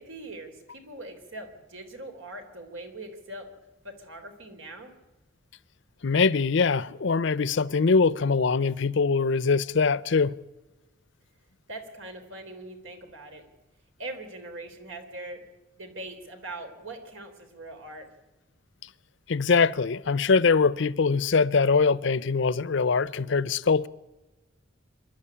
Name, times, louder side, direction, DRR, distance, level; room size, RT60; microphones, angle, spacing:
voice 1, 0.0-3.5 3.8-4.9 11.7-13.5 14.0-15.4 15.8-18.1, right 2 dB, 85° right, 3.8 m, -41 dB
voice 2, 6.0-10.4 19.3-23.9, left 4 dB, 65° left, 0.6 m, -23 dB
26.5 x 11.5 x 9.8 m
head